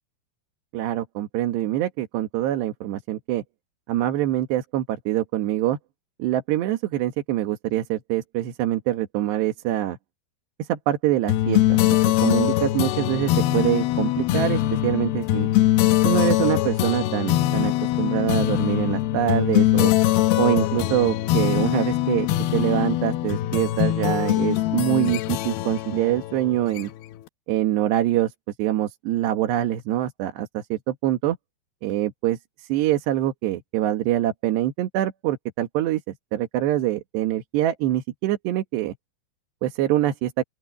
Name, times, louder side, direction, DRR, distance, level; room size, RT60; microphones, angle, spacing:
voice 1, 0.7-3.4 3.9-5.8 6.2-10.0 10.6-11.8 12.2-15.5 16.0-17.7 18.0-19.9 20.4-26.9 27.5-28.3 28.6-31.4 31.8-39.0 39.6-40.4, right 13 dB, 85° right, 3.8 m, -24 dB
sound 1, 11.3-27.2, left 14 dB, 80° left, 2.5 m, -22 dB
open air
omnidirectional pair, 4.8 m